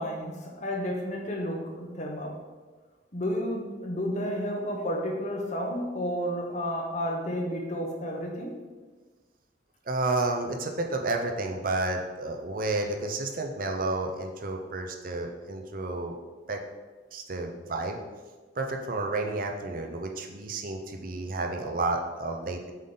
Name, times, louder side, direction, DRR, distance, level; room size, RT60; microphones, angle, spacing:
voice 1, 0.0-2.4 3.1-8.5, equal, 40° left, 1 dB, 0.9 m, -31 dB
voice 2, 9.9-16.2 16.5-16.6 17.1-18.0 18.6-22.7, right 2 dB, 45° right, 3 dB, 0.6 m, -31 dB
7.4 x 3.8 x 3.9 m, 1.3 s
head